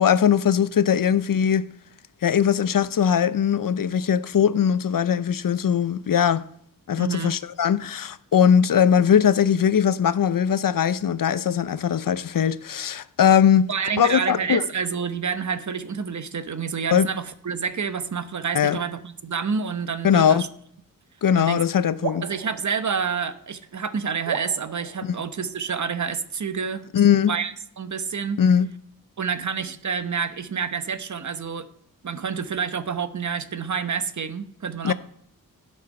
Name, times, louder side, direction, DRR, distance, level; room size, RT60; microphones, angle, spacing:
voice 1, 0.0-1.7 2.2-6.4 6.9-13.7 14.0-14.6 16.9-17.1 18.5-18.8 20.0-20.4 21.2-22.2 25.0-25.2 26.9-27.3 28.4-28.7 34.8-34.9, left 8 dB, 70° left, 0.6 m, -20 dB
voice 2, 7.0-7.3 13.5-20.5 21.3-21.6 22.2-26.9 27.3-28.4 29.2-31.7 32.0-34.9, right 6 dB, 55° right, 0.9 m, -28 dB
sound 1, 22.0-23.7 24.3-26.0, right 8 dB, 80° right, 0.8 m, -36 dB
17.0 x 6.4 x 5.4 m
wide cardioid pair, 95°, 34 cm